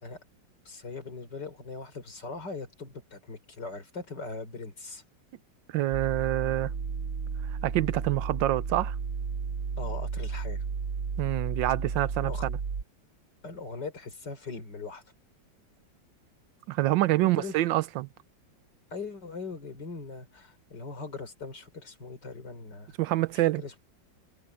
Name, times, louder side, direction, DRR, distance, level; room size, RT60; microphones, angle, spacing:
voice 1, 0.6-5.0 9.8-10.6 12.2-12.4 13.4-15.0 17.2-17.6 18.9-22.9 23.3-23.7, left 4 dB, 65° left, 5.0 m, -40 dB
voice 2, 5.7-6.7 7.6-9.0 11.2-12.6 16.7-18.1 23.0-23.6, right 16 dB, 80° right, 1.3 m, -26 dB
sound 1, 5.9-12.8, right 5 dB, 55° right, 1.7 m, -33 dB
omnidirectional pair, 2.0 m